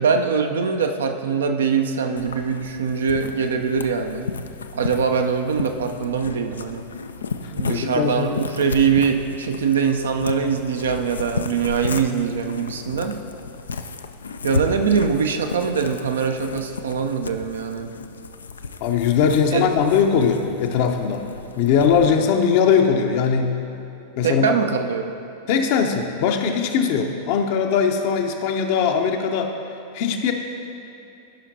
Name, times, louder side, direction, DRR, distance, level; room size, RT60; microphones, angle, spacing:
voice 1, 0.0-4.3 4.7-6.8 7.5-13.2 14.4-17.9 19.5-19.7 22.0-22.1 24.2-25.1, right 6 dB, 65° right, 5 dB, 0.6 m, -22 dB
sound 1, 2.2-22.1, left 4 dB, 70° left, 0.3 m, -33 dB
voice 2, 7.6-8.4 18.8-21.3 21.6-23.5 24.2-24.5 25.5-29.5 29.9-30.3, left 6 dB, 50° left, 4 dB, 0.7 m, -20 dB
14.0 x 5.7 x 2.8 m, 2.8 s
figure-of-eight pair, 90°, 0 cm